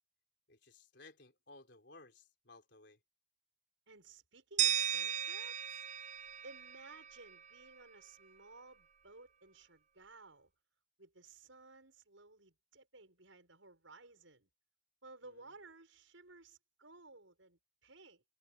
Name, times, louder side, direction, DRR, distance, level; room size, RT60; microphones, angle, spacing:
voice 1, 0.5-3.0 15.3-15.4, left 3 dB, 60° left, 4.5 m, -59 dB
voice 2, 3.9-5.8 6.4-10.5 11.0-14.5 15.0-18.2, right 3 dB, 80° right, 6.8 m, -57 dB
sound 1, 4.6-7.5, right 10 dB, 35° right, 0.6 m, -36 dB
head